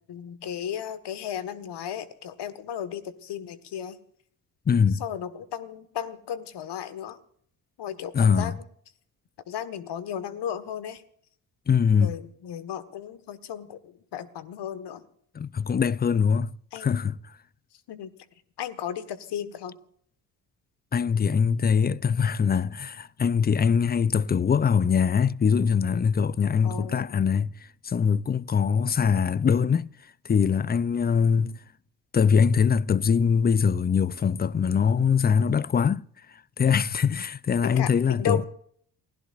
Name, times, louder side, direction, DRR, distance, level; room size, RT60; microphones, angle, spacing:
voice 1, 0.1-4.0 5.0-7.2 7.8-8.5 9.5-11.0 11.9-15.0 16.7-16.9 17.9-18.1 18.6-19.8 26.6-27.1 31.4-31.5 37.8-37.9 38.2-38.5, left 9 dB, 55° left, 1.6 m, -34 dB
voice 2, 4.7-5.0 8.1-8.6 11.7-12.2 15.3-16.5 16.8-17.2 20.9-27.5 27.8-29.9 30.3-31.5 32.1-36.0 36.6-38.4, left 6 dB, 20° left, 0.5 m, -22 dB
29.0 x 16.5 x 2.5 m
hypercardioid pair, 55°, 48 cm